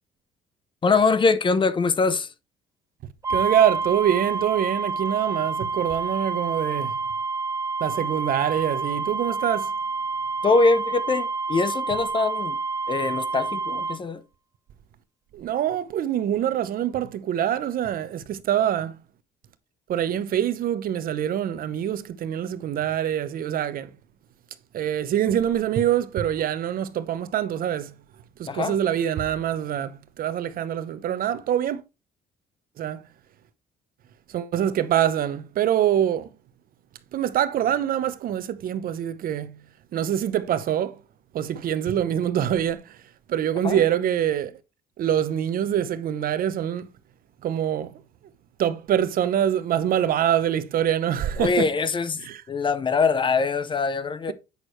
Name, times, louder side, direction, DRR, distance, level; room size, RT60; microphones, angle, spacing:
voice 1, 0.8-2.3 10.4-12.6 12.9-14.2 28.5-28.8 43.6-43.8 51.4-54.3, left 4 dB, 30° left, 0.7 m, -23 dB
sound 1, 3.2-14.0, right 4 dB, 20° right, 0.6 m, -28 dB
voice 2, 3.3-7.0 7.8-9.7 15.3-19.0 19.9-23.9 24.7-27.9 28.4-31.8 32.8-33.0 34.3-36.3 37.1-39.6 39.9-41.0 41.3-43.0 43.3-44.5 45.0-46.9 47.4-47.9 48.6-51.7 52.2-52.4, right 10 dB, 60° right, 0.8 m, -25 dB
8.2 x 6.3 x 3.2 m
cardioid pair, 110°, 17 cm